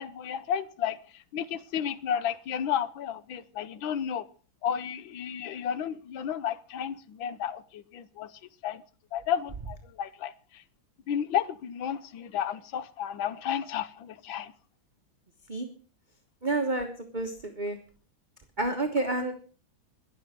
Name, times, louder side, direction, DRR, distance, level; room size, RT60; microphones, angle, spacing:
voice 1, 0.0-4.3 4.6-8.3 8.6-8.8 9.1-10.6 11.1-14.5, left 8 dB, 80° left, 1.6 m, -32 dB
voice 2, 16.4-17.8 18.6-19.3, right 2 dB, 25° right, 1.3 m, -29 dB
22.0 x 7.3 x 5.1 m
omnidirectional pair, 2.2 m